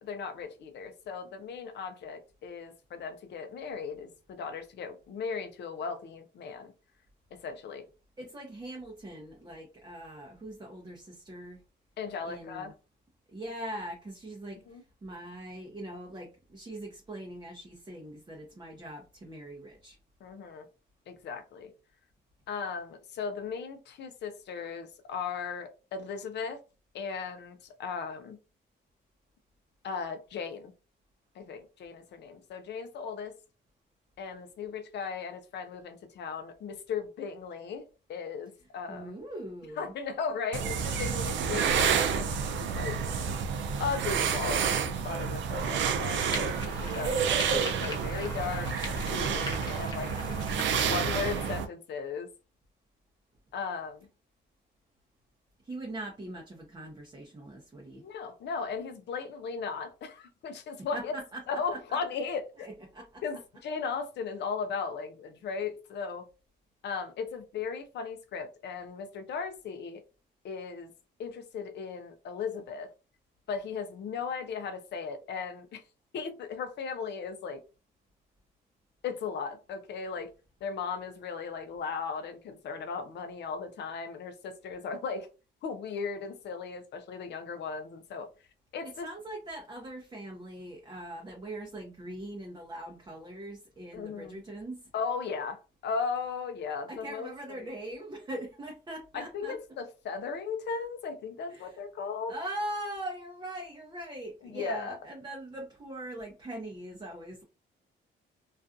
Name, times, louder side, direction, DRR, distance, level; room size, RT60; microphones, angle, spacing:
voice 1, 0.0-6.7 7.4-7.9 12.0-12.7 14.7-14.8 20.2-20.7 21.1-21.7 22.5-26.6 26.9-28.4 29.8-30.7 31.3-33.3 34.2-37.8 38.1-39.1 39.8-43.0 43.8-50.1 50.8-52.3 53.5-54.1 58.0-61.1 61.5-62.7 63.2-66.3 66.8-70.0 70.4-70.9 71.2-72.9 73.5-75.8 76.1-77.6 79.0-80.3 80.6-85.3 85.6-88.3 88.7-89.1 93.9-94.4 94.9-97.3 99.1-102.3 104.5-105.0, left 5 dB, 60° left, 0.6 m, -37 dB
voice 2, 8.2-11.6 12.2-12.7 13.3-20.0 38.9-39.9 55.6-58.1 60.8-62.0 62.6-63.2 88.8-94.9 96.9-99.6 101.5-101.8 102.3-107.4, right 1 dB, 20° right, 0.6 m, -41 dB
sound 1, 40.5-51.7, right 6 dB, 70° right, 0.5 m, -29 dB
sound 2, 46.1-51.6, left 2 dB, 20° left, 0.9 m, -42 dB
2.4 x 2.3 x 2.5 m
cardioid pair, 90°, 20 cm